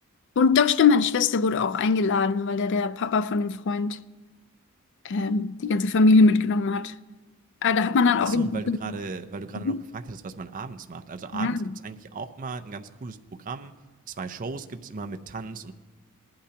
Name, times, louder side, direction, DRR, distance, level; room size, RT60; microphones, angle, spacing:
voice 1, 0.4-4.0 5.0-6.9 7.6-9.0 9.6-9.8 11.3-11.6, left 4 dB, 55° left, 0.4 m, -22 dB
voice 2, 8.3-13.7 14.1-15.7, right 4 dB, 40° right, 0.5 m, -36 dB
19.0 x 11.5 x 2.9 m
head